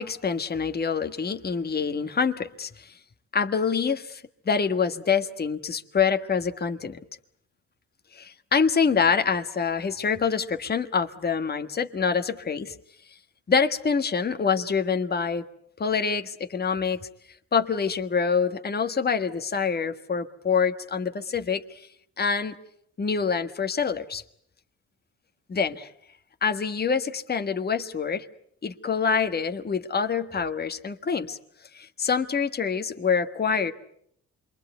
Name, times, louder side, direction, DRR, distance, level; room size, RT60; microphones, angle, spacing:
voice 1, 0.0-2.9 3.3-7.0 8.1-12.7 13.5-15.5 15.8-17.0 17.5-21.8 22.2-22.6 23.0-24.2 25.5-25.9 26.4-28.3 28.6-31.4 31.7-33.7, left 6 dB, 30° left, 7 dB, 1.5 m, -26 dB
27.0 x 23.0 x 8.1 m, 0.71 s
cardioid pair, 90°, 30 cm